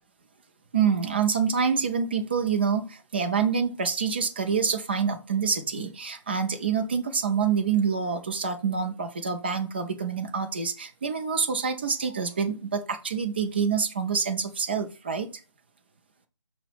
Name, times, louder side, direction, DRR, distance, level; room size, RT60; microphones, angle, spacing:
voice 1, 0.7-15.3, right 6 dB, 20° right, 6 dB, 0.3 m, -26 dB
5.5 x 2.0 x 4.7 m, 0.35 s
figure-of-eight pair, 155°, 16 cm